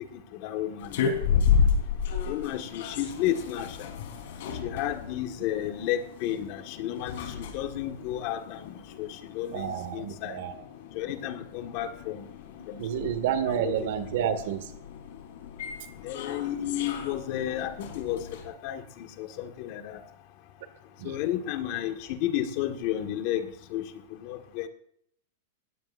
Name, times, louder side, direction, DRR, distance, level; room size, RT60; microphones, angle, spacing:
voice 1, 0.1-1.6 2.3-3.9 4.6-10.4 10.9-12.3 12.7-13.1 13.5-13.8 16.0-20.0 21.0-23.8 24.1-24.7, left 11 dB, 40° left, 6 dB, 1.7 m, -32 dB
sound 1, 0.8-18.4, left 6 dB, 60° left, 4.0 m, -33 dB
voice 2, 9.5-10.6 12.8-14.7 21.0-21.2, right 9 dB, 55° right, 10 dB, 1.8 m, -30 dB
20.0 x 16.0 x 2.6 m, 0.68 s
supercardioid pair, 170°, 0 cm